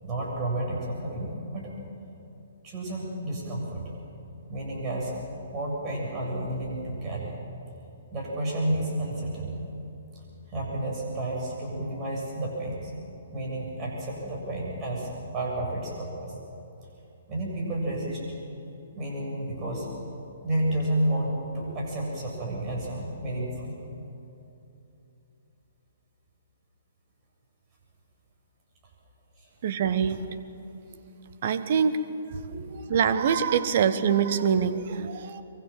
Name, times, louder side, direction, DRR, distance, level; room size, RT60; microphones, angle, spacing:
voice 1, 0.0-1.7 2.6-3.8 4.5-5.1 5.5-7.3 8.1-9.6 10.1-10.2 10.5-12.9 13.3-16.3 17.3-18.3 18.9-19.9 20.4-23.8 29.4-29.5 32.5-32.7, right 1 dB, 25° right, -2 dB, 7.4 m, -31 dB
voice 2, 29.6-30.3 31.4-32.0 32.3-35.4, right 7 dB, 45° right, 12 dB, 1.3 m, -25 dB
24.0 x 23.5 x 7.5 m, 2.9 s
figure-of-eight pair, 125°, 0 cm